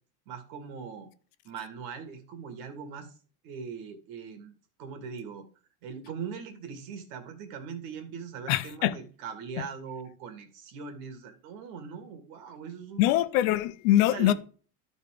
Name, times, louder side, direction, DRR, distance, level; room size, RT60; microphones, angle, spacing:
voice 1, 0.3-1.1 1.4-3.1 3.4-4.5 4.8-5.5 5.8-13.0 14.1-14.3, right 6 dB, 65° right, 2.1 m, -40 dB
voice 2, 8.5-8.9 13.0-14.3, left 14 dB, 65° left, 0.8 m, -23 dB
12.0 x 4.2 x 5.0 m
cardioid pair, 150°, 44 cm